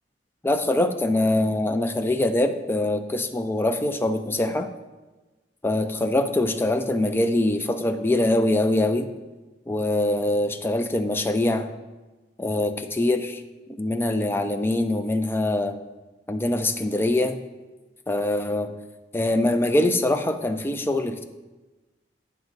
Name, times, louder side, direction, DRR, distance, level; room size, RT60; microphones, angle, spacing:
voice 1, 0.4-4.7 5.6-9.1 9.7-11.7 12.4-13.4 13.8-15.8 16.3-17.4 18.1-18.7 19.1-21.2, left 1 dB, 15° left, 7 dB, 0.4 m, -23 dB
8.1 x 3.5 x 6.5 m, 1.2 s
head